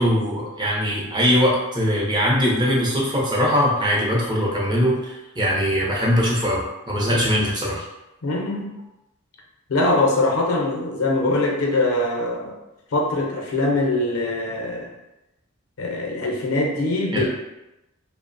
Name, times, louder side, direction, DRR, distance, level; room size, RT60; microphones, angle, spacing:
voice 1, 0.0-7.8 17.1-17.3, equal, 20° right, -4 dB, 0.6 m, -21 dB
voice 2, 8.2-8.7 9.7-12.6 12.9-14.9 15.8-17.3, left 2 dB, 80° left, 0 dB, 0.6 m, -22 dB
2.6 x 2.0 x 2.5 m, 0.95 s
head